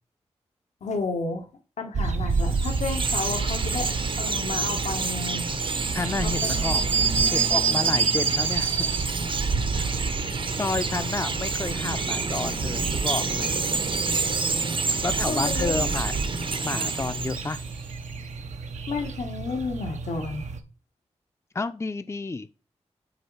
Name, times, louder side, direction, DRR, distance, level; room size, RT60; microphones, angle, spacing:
voice 1, 0.8-1.5 1.8-3.9 4.2-5.5 6.2-6.8 7.2-7.5 14.9-15.9 18.9-20.4, left 4 dB, 80° left, 4 dB, 1.2 m, -32 dB
sound 1, 1.9-20.6, right 5 dB, 85° right, 0.8 m, -29 dB
Chirp tweet, 2.3-17.9, right 4 dB, 45° right, 0.7 m, -29 dB
voice 2, 5.9-6.8 7.3-8.9 9.7-9.9 10.5-13.6 15.0-16.1 16.6-17.6 21.5-22.5, left 3 dB, 25° left, 11 dB, 0.5 m, -30 dB
6.5 x 3.9 x 4.6 m, 0.35 s
cardioid pair, 40°, 12 cm